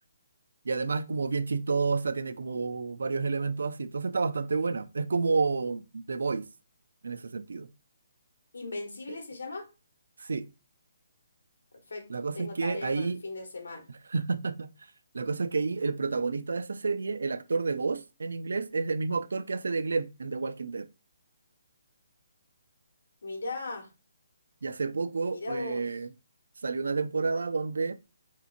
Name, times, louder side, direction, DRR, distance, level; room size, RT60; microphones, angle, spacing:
voice 1, 0.7-6.5 7.0-7.7 10.2-10.5 12.1-13.2 14.1-14.7 15.1-20.9 24.6-26.1 26.6-28.0, right 4 dB, 80° right, 0.3 m, -30 dB
voice 2, 8.5-9.7 11.9-12.0 12.3-13.9 23.2-23.9 25.3-25.8, left 3 dB, 80° left, 1.2 m, -37 dB
3.6 x 2.8 x 2.5 m
hypercardioid pair, 165°, 0 cm